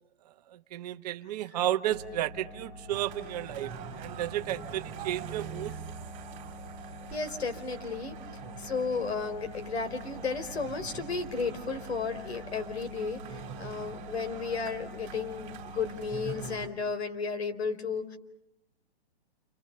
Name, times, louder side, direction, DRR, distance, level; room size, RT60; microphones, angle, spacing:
voice 1, 0.2-5.8, right 12 dB, 40° right, 9 dB, 1.2 m, -33 dB
sound 1, 1.9-16.6, left 1 dB, 55° left, 6.8 m, -46 dB
sound 2, 2.9-16.7, right 8 dB, 25° right, 3.0 m, -45 dB
voice 2, 7.1-8.2 8.6-18.2, left 5 dB, 75° left, 9 dB, 4.6 m, -33 dB
29.5 x 26.5 x 6.9 m, 0.79 s
hypercardioid pair, 145°, 32 cm